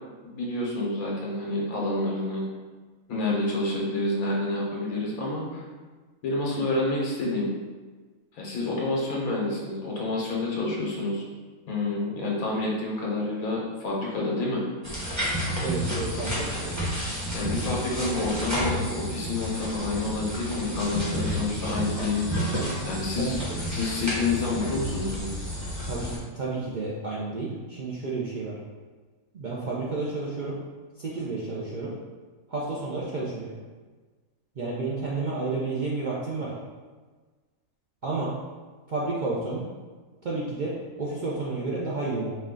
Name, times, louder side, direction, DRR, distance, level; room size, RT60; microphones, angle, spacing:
voice 1, 0.2-2.5 3.1-5.6 6.2-7.5 8.3-11.2 11.7-14.6 17.3-22.4 22.8-23.4 23.7-25.3, left 2 dB, 85° left, -3 dB, 1.4 m, -28 dB
sound 1, 14.8-26.2, equal, 15° right, 0.8 m, -31 dB
voice 2, 15.6-16.9 23.2-23.4 25.9-26.1 26.3-28.5 29.3-30.6 31.0-31.9 32.5-33.5 34.6-36.5 38.0-38.3 38.9-39.6 40.2-42.3, right 3 dB, 55° right, -6 dB, 0.5 m, -31 dB
4.4 x 2.3 x 3.7 m, 1.4 s
omnidirectional pair, 1.5 m